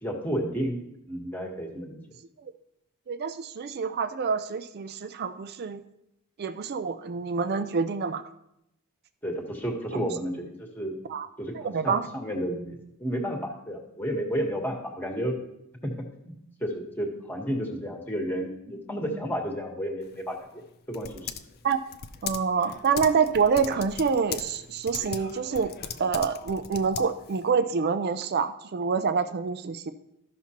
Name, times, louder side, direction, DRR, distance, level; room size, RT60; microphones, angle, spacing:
voice 1, 0.0-0.8 1.1-2.0 9.2-11.0 11.4-15.4 15.8-15.9 16.2-16.3 16.6-20.6 20.9-21.3, equal, 10° left, 1 dB, 1.3 m, -32 dB
voice 2, 3.1-5.8 6.4-8.2 9.9-10.1 11.1-11.3 11.5-12.0 21.6-21.8 22.2-25.7 26.0-29.9, right 5 dB, 50° right, 11 dB, 0.4 m, -27 dB
Typing, 20.0-27.5, left 7 dB, 45° left, 0.5 m, -40 dB
13.5 x 5.8 x 2.9 m, 0.81 s
head